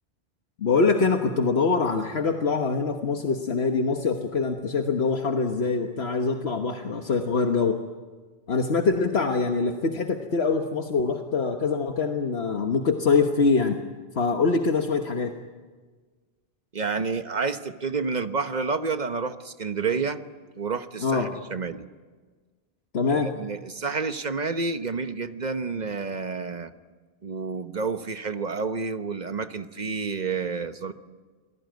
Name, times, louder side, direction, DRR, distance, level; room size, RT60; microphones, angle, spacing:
voice 1, 0.6-7.8 8.5-13.8 14.1-15.3 21.0-21.3 22.9-23.3, left 4 dB, 75° left, 4 dB, 1.5 m, -24 dB
voice 2, 16.7-20.2 20.6-21.8 23.1-26.7 27.2-30.9, right 4 dB, 45° right, 9 dB, 1.2 m, -29 dB
28.5 x 19.5 x 9.3 m, 1.4 s
omnidirectional pair, 1.1 m